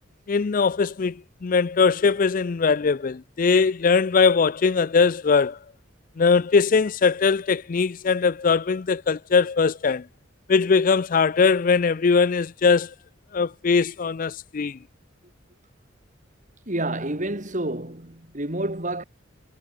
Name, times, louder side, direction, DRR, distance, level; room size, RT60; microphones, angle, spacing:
voice 1, 0.3-5.6 6.2-10.0 10.5-12.9 13.3-14.8, left 5 dB, 40° left, 0.4 m, -21 dB
voice 2, 16.7-19.0, right 1 dB, 40° right, 3.4 m, -29 dB
head